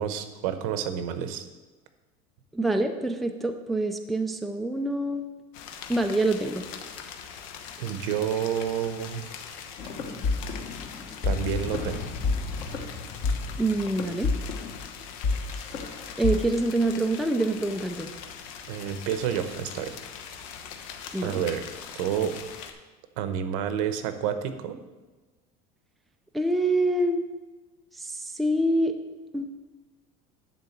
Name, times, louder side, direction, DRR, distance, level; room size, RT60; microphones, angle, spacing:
voice 1, 0.0-1.5 7.8-9.4 11.2-12.0 18.7-20.0 21.2-21.6 21.9-22.4 23.2-24.8, right 9 dB, 80° right, 9 dB, 0.9 m, -29 dB
voice 2, 2.5-5.3 5.9-6.6 13.6-14.3 16.2-18.1 21.1-21.4 26.3-27.2 27.9-28.9 29.3-29.5, right 1 dB, ahead, 4 dB, 0.3 m, -26 dB
sound 1, 5.5-22.7, left 7 dB, 75° left, 1.0 m, -42 dB
sound 2, 9.8-16.3, left 4 dB, 40° left, 1.1 m, -30 dB
10.5 x 3.8 x 7.2 m, 1.3 s
cardioid pair, 175°, 17 cm